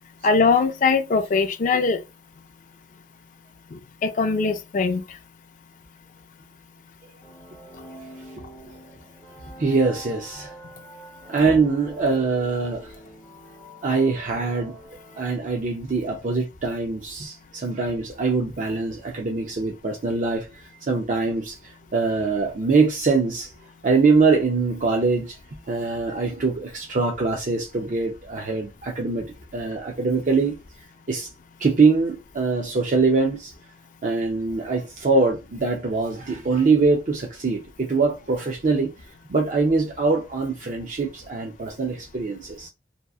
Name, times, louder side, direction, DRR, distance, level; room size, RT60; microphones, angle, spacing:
voice 1, 0.2-2.0 3.7-5.0, left 4 dB, 45° left, 0.4 m, -21 dB
sound 1, 7.2-15.8, equal, 10° left, 0.7 m, -45 dB
voice 2, 9.6-10.5 11.3-12.9 13.8-14.8 15.2-23.5 23.8-25.4 25.7-29.3 29.5-30.5 31.1-31.3 31.6-33.5 34.0-38.9 39.3-42.7, right 4 dB, 45° right, 0.4 m, -23 dB
2.7 x 2.4 x 2.3 m
head